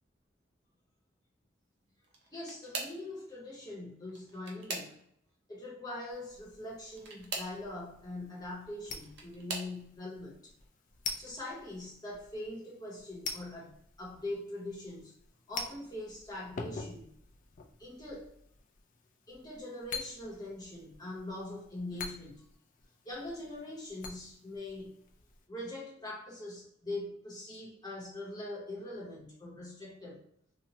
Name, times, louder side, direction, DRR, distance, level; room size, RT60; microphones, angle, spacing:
sound 1, 2.0-3.1 4.0-5.3 6.9-7.6 8.7-9.8 10.5-10.9 11.3-11.4 12.7-12.8, right 3 dB, 60° right, 0.6 m, -42 dB
voice 1, 2.3-5.0 5.5-10.5 11.2-15.1 15.5-17.1 17.8-18.3 19.3-22.4 23.0-25.0 25.5-30.2, left 1 dB, 20° left, 0.8 m, -42 dB
sound 2, 6.1-25.5, left 4 dB, 40° left, 0.3 m, -47 dB
2.8 x 2.1 x 2.8 m
head